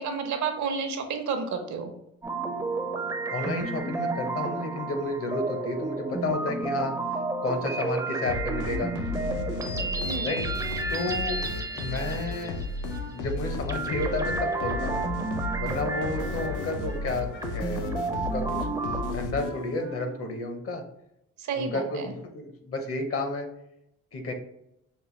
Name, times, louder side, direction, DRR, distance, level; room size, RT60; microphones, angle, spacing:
voice 1, 0.0-1.9 10.0-10.4 21.4-22.1, right 5 dB, 70° right, 6 dB, 0.8 m, -31 dB
sound 1, 2.2-13.1 13.7-19.1, right 3 dB, 10° right, 0.5 m, -32 dB
voice 2, 3.3-7.0 7.4-8.9 10.2-10.4 10.9-11.4 11.8-12.6 13.1-15.0 15.6-20.8 21.6-23.5 24.1-24.3, left 2 dB, 50° left, 5 dB, 0.8 m, -31 dB
sound 2, 8.3-19.9, left 3 dB, 85° left, 0.6 m, -34 dB
Wind instrument woodwind instrument, 12.9-20.3, left 3 dB, 70° left, 1.2 m, -43 dB
5.3 x 2.2 x 3.1 m, 0.80 s
cardioid pair, 90°, 30 cm